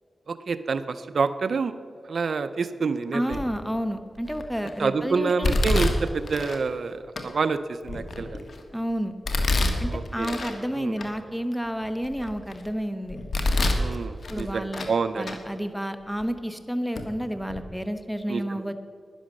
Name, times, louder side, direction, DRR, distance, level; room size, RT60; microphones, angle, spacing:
voice 1, 0.3-1.8 2.1-3.4 4.8-8.4 9.9-10.3 10.7-10.9 13.7-15.3 18.3-18.6, right 4 dB, 70° right, 12 dB, 0.5 m, -27 dB
voice 2, 3.1-5.6 8.7-9.1 9.8-13.2 14.3-14.9 15.1-18.7, equal, ahead, 9 dB, 1.0 m, -30 dB
Domestic sounds home sounds, 3.3-3.7 4.3-4.7 5.4-6.6 7.2-7.3 7.8-8.6 9.2-10.6 11.0-11.1 11.7-12.6 13.1-13.9 14.2-15.0 15.2-15.4 16.2-16.3 16.9-17.1 17.4-17.6, left 2 dB, 70° left, 1.5 m, -26 dB
11.5 x 10.5 x 6.4 m, 2.1 s
wide cardioid pair, 80°, 0 cm